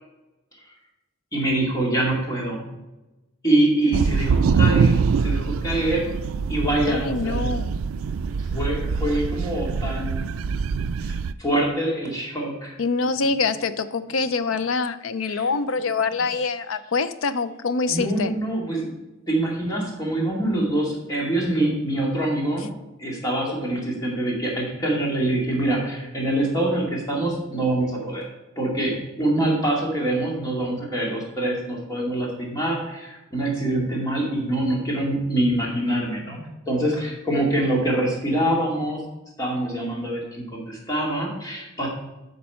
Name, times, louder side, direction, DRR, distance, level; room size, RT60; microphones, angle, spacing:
voice 1, 1.3-2.7 3.4-6.1 6.5-7.4 8.5-10.3 11.0-12.8 15.3-15.5 17.9-19.0 19.3-22.7 23.0-28.3 28.6-36.4 36.7-39.0 39.4-41.9, right 1 dB, 20° left, -3 dB, 2.3 m, -25 dB
sound 1, 3.9-11.3, right 5 dB, 85° right, 0.3 m, -24 dB
voice 2, 6.9-7.7 12.8-18.3, left 4 dB, 75° left, 13 dB, 0.5 m, -25 dB
8.6 x 5.4 x 5.6 m, 1.0 s
head